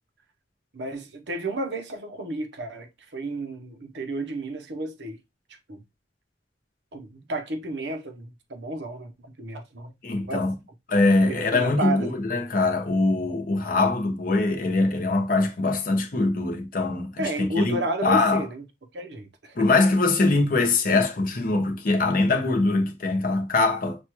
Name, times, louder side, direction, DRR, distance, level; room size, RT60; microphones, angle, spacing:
voice 1, 0.7-5.2 5.7-5.8 6.9-9.1 9.4-10.4 11.2-12.1 17.2-18.6 18.9-19.7, right 2 dB, 75° right, 0.8 m, -32 dB
voice 2, 10.0-10.5 10.9-18.4 19.6-24.0, left 3 dB, 50° left, 0.8 m, -23 dB
6.1 x 2.3 x 2.9 m
head